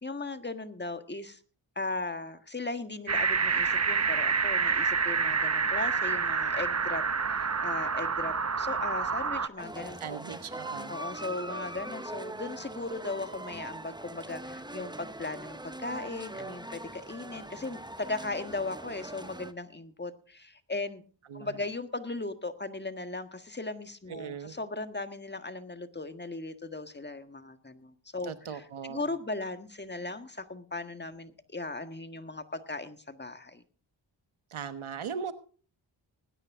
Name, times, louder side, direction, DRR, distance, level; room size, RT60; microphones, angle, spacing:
voice 1, 0.0-1.4 1.7-7.0 7.3-10.2 10.9-21.0 21.3-33.6, left 2 dB, 20° left, 9 dB, 1.6 m, -37 dB
sound 1, 3.1-9.5, right 5 dB, 35° right, 0.9 m, -28 dB
sound 2, 9.6-19.5, right 1 dB, 10° right, 1.0 m, -42 dB
voice 2, 10.0-10.9 21.3-21.6 24.1-24.5 28.2-29.1 34.5-35.3, right 7 dB, 80° right, 11 dB, 1.3 m, -39 dB
20.0 x 9.9 x 3.7 m, 0.41 s
cardioid pair, 40°, 48 cm